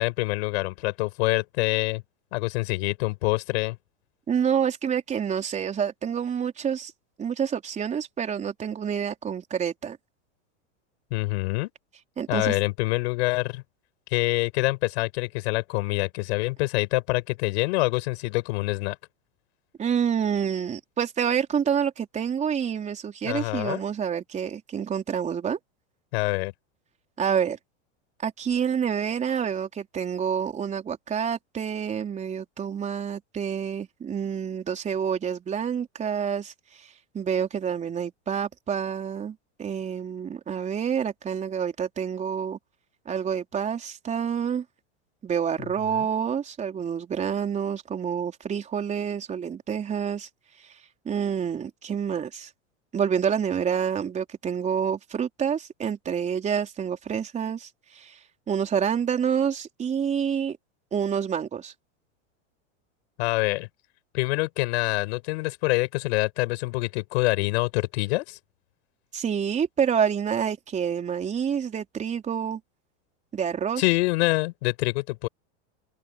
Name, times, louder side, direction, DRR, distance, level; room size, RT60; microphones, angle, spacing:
voice 1, 0.0-2.0 2.3-3.8 11.1-11.7 12.3-13.6 14.1-19.0 23.2-23.8 26.1-26.5 45.6-46.1 63.2-63.7 64.1-68.4 73.8-75.3, left 23 dB, 60° left, 7.7 m, -26 dB
voice 2, 4.3-6.9 7.2-10.0 12.2-12.5 19.8-25.6 27.2-27.6 28.2-36.5 36.8-36.9 37.1-42.6 43.1-44.6 45.2-50.3 51.0-52.5 52.9-58.2 58.5-60.6 60.9-61.7 69.1-72.6 73.3-73.8, right 7 dB, 20° right, 4.1 m, -28 dB
open air
supercardioid pair, 150°, 37 cm